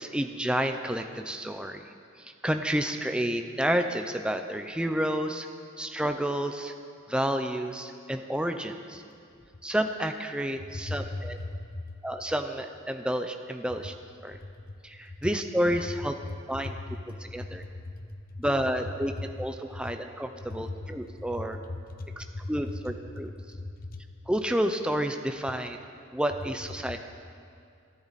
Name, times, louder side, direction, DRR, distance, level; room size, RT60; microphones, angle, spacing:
voice 1, 0.0-1.8 2.2-5.5 5.8-6.7 7.1-9.0 9.6-11.4 12.0-13.9 14.2-14.4 14.8-16.2 16.5-16.8 17.2-17.6 18.4-21.6 22.2-23.3 24.3-25.8 26.1-27.0, equal, 5° right, 5 dB, 0.6 m, -30 dB
voice 2, 10.7-12.0 14.3-14.5 16.6-17.0 17.4-17.5 17.8-18.5 19.1-19.2 19.8-19.9 20.5-22.4 22.8-22.9 23.5-24.0, left 2 dB, 45° left, 6 dB, 1.0 m, -38 dB
25.0 x 10.5 x 4.2 m, 2.4 s
head